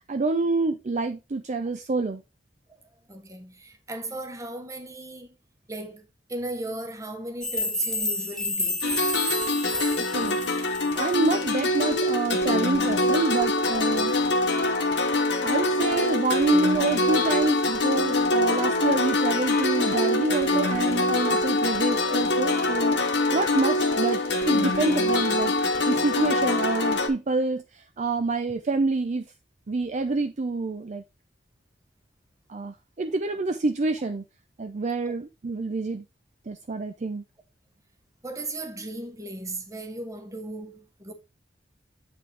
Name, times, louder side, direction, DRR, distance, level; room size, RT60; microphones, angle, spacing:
voice 1, 0.1-2.2 10.1-10.4 10.9-14.4 15.4-25.6 25.9-29.2 29.7-31.0 32.5-34.2 34.6-36.0 36.5-37.2, right 3 dB, 40° right, 0.5 m, -27 dB
voice 2, 3.1-5.4 5.7-8.9 35.1-35.2 38.2-41.1, right 2 dB, 20° right, 1.1 m, -36 dB
sound 1, 7.4-11.3, left 2 dB, 5° left, 0.7 m, -30 dB
sound 2, 8.8-27.1, left 2 dB, 70° left, 1.2 m, -24 dB
8.0 x 5.1 x 3.3 m
head